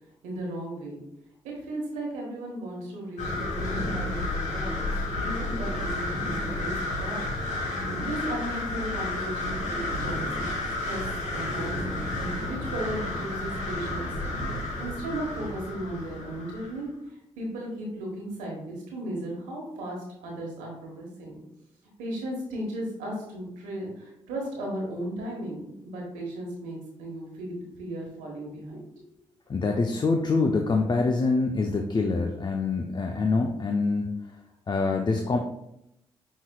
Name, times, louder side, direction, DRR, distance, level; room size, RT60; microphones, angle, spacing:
voice 1, 0.2-1.0 1.6-4.9 5.2-6.7 7.0-7.3 7.8-10.5 10.8-11.0 11.3-12.0 12.4-14.1 14.8-21.4 22.0-28.9, right 1 dB, 80° right, -1 dB, 1.2 m, -36 dB
sound 1, 3.2-16.8, left 2 dB, 65° left, 1.4 m, -31 dB
voice 2, 29.5-34.1 34.7-35.4, left 3 dB, 35° left, 3 dB, 0.5 m, -25 dB
5.4 x 3.1 x 2.3 m, 0.81 s
hypercardioid pair, 40°, 13 cm